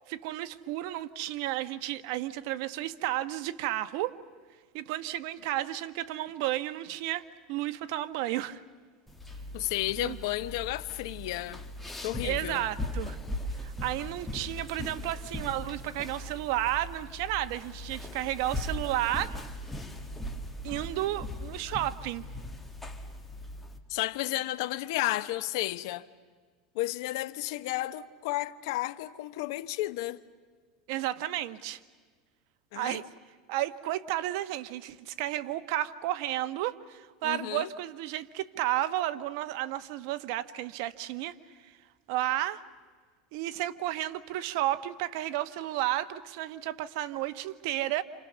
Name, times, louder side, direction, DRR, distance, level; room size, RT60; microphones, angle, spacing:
voice 1, 0.1-4.2 4.7-8.6 10.0-10.2 12.2-13.2 13.6-19.4 20.6-22.2 30.9-31.8 32.7-33.1 33.5-41.3 41.6-41.7 42.1-42.6 43.3-48.0, right 14 dB, 65° right, 1.1 m, -32 dB
sound 1, 9.1-23.8, left 1 dB, 5° left, 2.0 m, -39 dB
voice 2, 9.5-11.6 12.0-12.6 23.9-26.1 26.7-30.2 32.7-33.0 37.2-37.7, left 16 dB, 70° left, 1.0 m, -32 dB
28.5 x 28.0 x 6.9 m
supercardioid pair, 135°, 2 cm